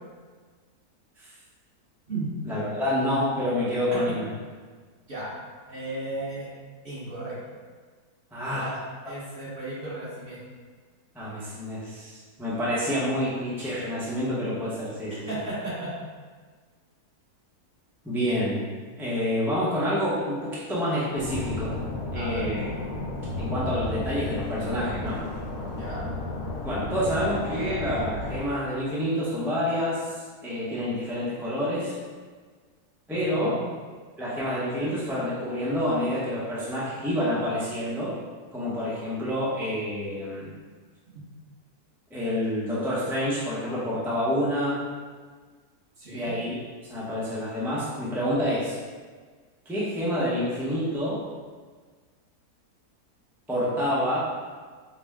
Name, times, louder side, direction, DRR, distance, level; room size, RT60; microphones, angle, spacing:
voice 1, 2.4-4.3 8.3-8.7 11.1-15.3 18.0-21.7 22.1-22.7 23.4-25.2 26.6-32.0 33.1-33.6 34.2-38.1 38.5-40.5 42.1-44.8 46.1-46.6 46.8-48.8 49.7-51.2 53.5-54.2, equal, 5° right, -8 dB, 0.4 m, -28 dB
voice 2, 5.7-6.5 6.8-7.6 8.5-8.8 9.1-10.4 15.3-15.9 22.1-22.5 25.7-26.1 33.1-33.6 46.0-46.3, right 2 dB, 40° right, -8 dB, 1.3 m, -35 dB
sound 1, 21.2-28.4, left 2 dB, 85° left, 1.3 m, -33 dB
4.9 x 2.1 x 3.5 m, 1.5 s
omnidirectional pair, 1.6 m